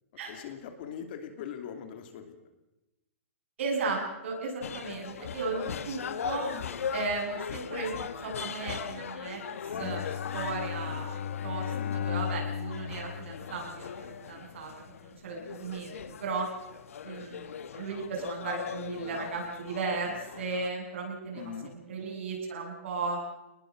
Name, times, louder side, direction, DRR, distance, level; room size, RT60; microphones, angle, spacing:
voice 1, 0.3-2.4 6.5-6.6 11.7-12.0 17.0-17.3 21.3-21.8, left 8 dB, 45° left, 6 dB, 2.7 m, -41 dB
voice 2, 3.6-6.5 6.9-7.9 8.2-9.4 9.7-16.5 17.0-23.2, right 4 dB, 60° right, 1 dB, 7.7 m, -35 dB
sound 1, 4.6-20.7, left 7 dB, 90° left, 1.5 m, -40 dB
Bowed string instrument, 9.7-14.1, left 8 dB, 60° left, 1.1 m, -35 dB
28.0 x 20.0 x 6.2 m, 0.97 s
hypercardioid pair, 170°, 7 cm